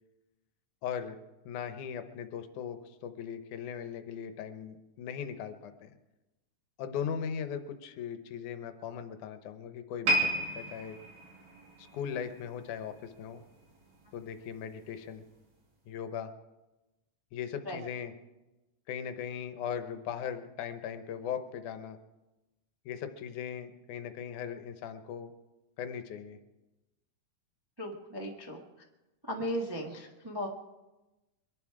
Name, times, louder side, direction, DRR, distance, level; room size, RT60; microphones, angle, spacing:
voice 1, 0.8-1.2 1.5-5.9 6.8-11.0 11.9-13.4 14.1-15.2 15.9-16.3 17.3-18.1 18.9-22.0 22.9-25.3 25.8-26.4, left 8 dB, 75° left, 9 dB, 2.4 m, -39 dB
sound 1, 10.0-13.3 13.6-13.9 14.6-14.7, right 1 dB, 65° right, 3.9 m, -33 dB
voice 2, 27.8-28.6 29.2-30.5, equal, 35° right, -1 dB, 0.4 m, -36 dB
24.5 x 11.0 x 4.8 m, 1.1 s
omnidirectional pair, 3.6 m